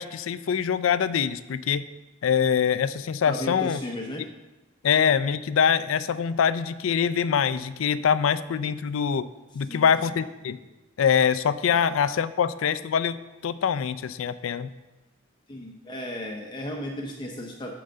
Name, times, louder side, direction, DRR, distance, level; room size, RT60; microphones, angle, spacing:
voice 1, 0.0-1.9 2.2-3.8 4.8-9.3 9.5-10.6 11.0-13.2 13.4-14.7, left 7 dB, 80° left, 14 dB, 0.4 m, -24 dB
voice 2, 3.3-4.2 9.7-9.9 11.7-11.8 15.5-17.8, left 1 dB, 25° left, 0 dB, 0.6 m, -35 dB
8.8 x 3.8 x 6.7 m, 1.1 s
head